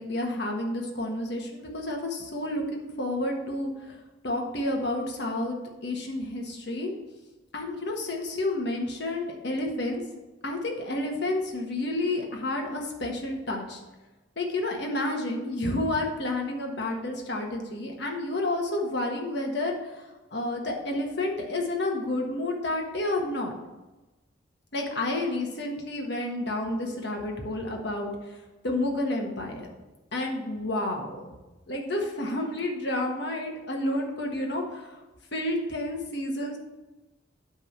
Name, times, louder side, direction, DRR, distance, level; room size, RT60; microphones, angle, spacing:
voice 1, 0.0-3.9 4.2-5.6 5.8-6.9 7.5-10.0 10.4-13.8 14.4-23.5 24.7-28.4 28.6-29.7 30.1-31.2 31.7-35.0 35.3-36.6, left 1 dB, 60° left, 1 dB, 1.4 m, -30 dB
9.1 x 3.7 x 6.7 m, 1.1 s
head